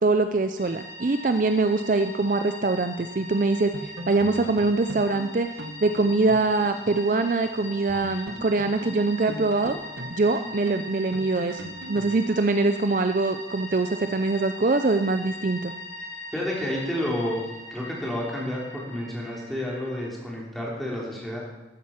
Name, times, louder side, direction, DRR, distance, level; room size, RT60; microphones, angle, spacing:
voice 1, 0.0-5.5 5.8-9.8 10.1-15.7, right 3 dB, 45° right, 8 dB, 0.5 m, -23 dB
sound 1, 0.6-20.1, left 1 dB, 60° left, 3.5 m, -41 dB
sound 2, 3.7-7.2 7.4-7.5 7.9-12.2, equal, 70° right, 1.4 m, -39 dB
voice 2, 16.3-17.4 17.7-21.4, left 1 dB, ahead, -4 dB, 3.4 m, -30 dB
13.5 x 9.3 x 5.8 m, 1.1 s
head